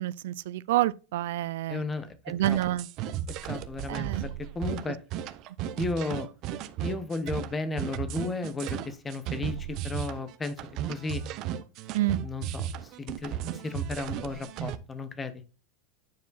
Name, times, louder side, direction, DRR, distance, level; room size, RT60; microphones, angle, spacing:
voice 1, 0.0-1.8 2.3-2.9 3.9-4.2 11.9-12.2, right 14 dB, 70° right, 0.3 m, -28 dB
voice 2, 1.7-2.2 2.4-2.8 3.4-5.0 5.8-6.3 6.8-11.2 12.2-15.4, left 3 dB, 15° left, 0.9 m, -34 dB
sound 1, 2.4-14.8, right 10 dB, 40° right, 0.7 m, -35 dB
9.3 x 4.8 x 4.1 m
supercardioid pair, 155°, 0 cm